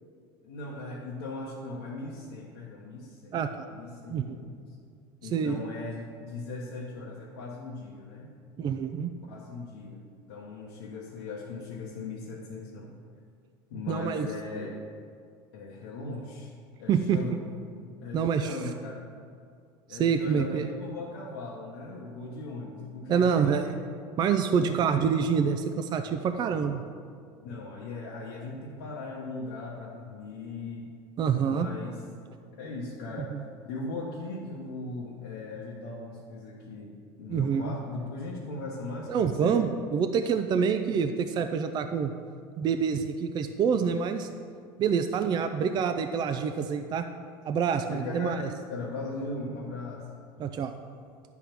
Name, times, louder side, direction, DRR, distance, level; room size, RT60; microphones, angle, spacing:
voice 1, 0.4-3.4 3.7-4.6 5.2-8.3 9.2-12.9 13.7-14.8 15.5-16.5 16.8-17.5 18.0-19.0 19.9-23.8 24.6-25.1 27.4-30.9 31.4-32.0 32.5-33.3 33.6-39.6 47.9-50.1, left 2 dB, 85° left, -4 dB, 1.0 m, -38 dB
voice 2, 3.3-3.6 4.1-4.4 5.3-5.6 8.6-9.1 13.9-14.3 16.9-17.2 18.1-18.6 19.9-20.7 23.1-23.6 24.2-26.8 31.2-31.7 33.2-33.4 37.3-37.8 39.1-42.1 42.6-44.3 44.8-47.1 47.4-48.5 50.4-50.7, right 6 dB, 35° right, 7 dB, 0.4 m, -27 dB
10.0 x 3.5 x 6.0 m, 2.3 s
supercardioid pair, 110°, 12 cm